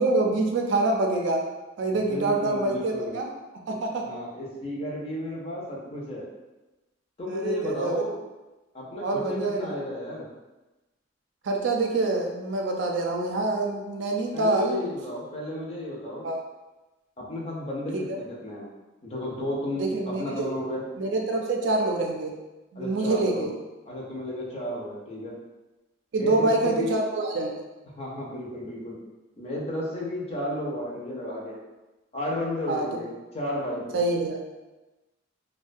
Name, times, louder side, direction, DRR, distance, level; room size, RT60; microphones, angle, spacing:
voice 1, 0.0-1.4 1.8-3.3 3.7-4.0 7.3-8.0 9.0-9.7 11.4-14.8 16.2-16.4 17.9-18.2 19.8-20.5 21.0-22.3 22.7-23.5 26.1-27.5 32.7-32.8 33.9-34.4, right 2 dB, 75° right, 1 dB, 0.4 m, -26 dB
voice 2, 1.9-3.2 4.0-6.3 7.2-8.2 8.7-10.3 14.3-16.3 17.2-18.7 19.0-20.8 22.8-23.5 23.9-25.3 26.1-27.0 28.0-29.0 29.4-31.6 32.1-33.1 33.3-34.0, left 1 dB, 35° left, -3 dB, 0.5 m, -33 dB
2.3 x 2.1 x 2.5 m, 1.1 s
head